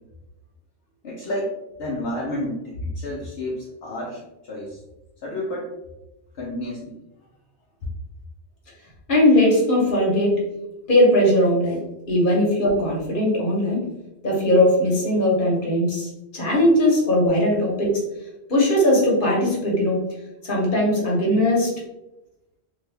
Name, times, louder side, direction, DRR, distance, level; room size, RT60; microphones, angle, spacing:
voice 1, 1.0-1.5 1.8-4.2 4.5-4.8 5.2-5.7 6.4-6.9 17.5-17.6, left 1 dB, 70° left, -5 dB, 0.9 m, -30 dB
voice 2, 9.1-10.4 10.9-11.8 12.1-13.9 14.2-18.0 18.5-20.0 20.4-21.7, left 1 dB, 50° left, -4 dB, 1.2 m, -19 dB
2.8 x 2.7 x 3.3 m, 0.94 s
omnidirectional pair, 1.1 m